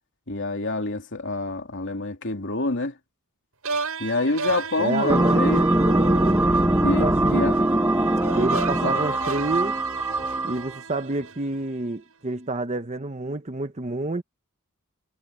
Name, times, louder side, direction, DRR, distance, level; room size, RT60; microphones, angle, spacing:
voice 1, 0.3-2.9 4.0-5.6 6.8-7.5 8.7-9.1, left 2 dB, 55° left, 3.1 m, -27 dB
sound 1, 3.6-11.8, right 4 dB, 70° right, 7.8 m, -35 dB
voice 2, 4.8-7.5 8.3-9.8 10.4-14.2, right 2 dB, 30° right, 0.9 m, -29 dB
sound 2, 5.1-10.7, right 1 dB, 10° right, 1.3 m, -22 dB
head